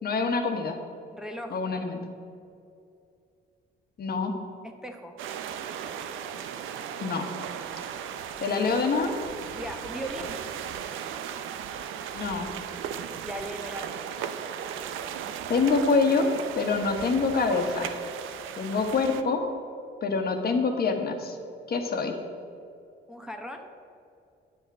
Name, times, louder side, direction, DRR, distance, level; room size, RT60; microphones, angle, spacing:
voice 1, 0.0-0.8 1.5-2.0 4.0-4.3 7.0-7.2 8.4-9.1 12.1-12.5 15.5-16.3 16.6-18.0 18.6-19.4 20.0-21.4 21.7-22.2, left 4 dB, 50° left, 4 dB, 1.2 m, -25 dB
voice 2, 1.1-1.6 4.6-5.1 9.5-10.4 13.2-14.0 23.1-23.7, equal, 5° right, 2 dB, 0.9 m, -38 dB
sound 1, 5.2-19.2, right 8 dB, 85° right, 0.6 m, -37 dB
9.8 x 5.9 x 6.2 m, 2.4 s
cardioid pair, 90°, 20 cm